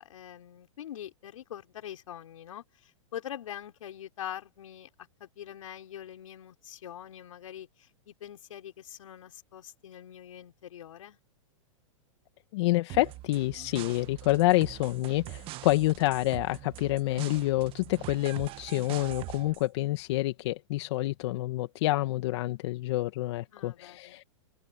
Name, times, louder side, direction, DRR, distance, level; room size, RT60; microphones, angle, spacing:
voice 1, 0.0-4.9 5.2-11.2 23.5-24.2, left 10 dB, 75° left, 5.5 m, -44 dB
voice 2, 12.5-24.2, left 18 dB, 55° left, 1.6 m, -28 dB
sound 1, 12.9-19.7, right 18 dB, 30° right, 1.2 m, -43 dB
open air
hypercardioid pair, 135°, 17 cm